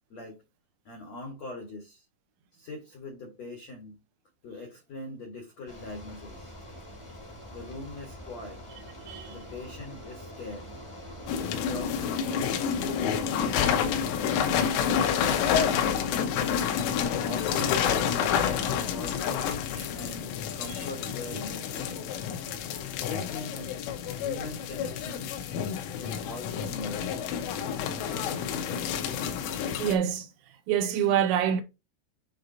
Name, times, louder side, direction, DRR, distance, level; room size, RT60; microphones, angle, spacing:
voice 1, 0.1-0.4 0.8-2.0 2.5-4.0 4.4-6.7 7.5-8.6 9.3-10.7 11.2-16.0 17.0-19.5 19.9-22.2 23.0-23.7 24.2-25.3 26.0-27.3 27.8-29.1, left 2 dB, 70° left, 1.6 m, -42 dB
Bicycle, 5.7-16.3, equal, 15° left, 0.9 m, -44 dB
voice 2, 9.1-9.4 19.7-19.9 20.7-20.8 29.8-30.3 30.7-31.6, right 9 dB, 80° right, 2.9 m, -26 dB
sound 1, 11.3-30.0, left 8 dB, 90° left, 3.6 m, -29 dB
9.7 x 3.8 x 2.8 m
omnidirectional pair, 5.6 m